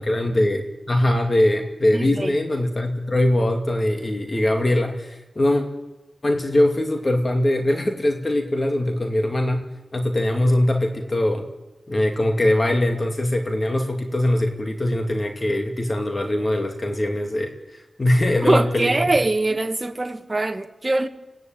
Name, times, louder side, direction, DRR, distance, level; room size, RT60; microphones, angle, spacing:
voice 1, 0.1-5.6 6.2-9.7 9.9-11.5 11.9-19.0, left 1 dB, 35° left, 2.3 m, -22 dB
voice 2, 1.9-2.3 18.5-21.1, right 2 dB, 30° right, 1.4 m, -22 dB
26.0 x 17.5 x 9.2 m
wide cardioid pair, 70°, 0 cm